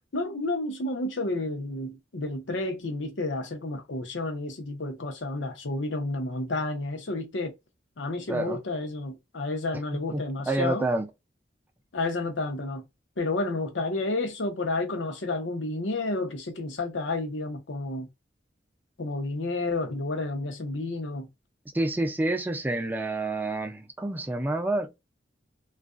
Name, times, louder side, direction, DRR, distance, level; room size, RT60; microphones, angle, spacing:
voice 1, 0.1-7.5 8.0-10.9 11.9-12.8 13.2-18.1 19.0-21.3, left 2 dB, 85° left, 0.7 m, -31 dB
voice 2, 8.3-8.6 10.1-11.1 21.7-25.0, right 2 dB, 10° right, 0.4 m, -28 dB
2.4 x 2.1 x 2.4 m
head